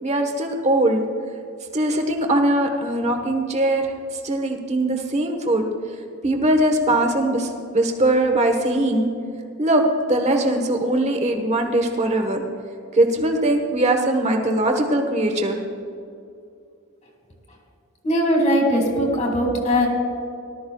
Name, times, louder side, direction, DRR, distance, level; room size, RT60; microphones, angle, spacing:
voice 1, 0.0-1.0 1.7-3.9 4.2-5.7 6.2-9.1 9.6-12.4 12.9-15.6, right 1 dB, 30° right, 4 dB, 1.2 m, -21 dB
voice 2, 18.0-19.9, equal, 30° left, 1 dB, 2.3 m, -20 dB
18.5 x 12.5 x 2.3 m, 2.5 s
head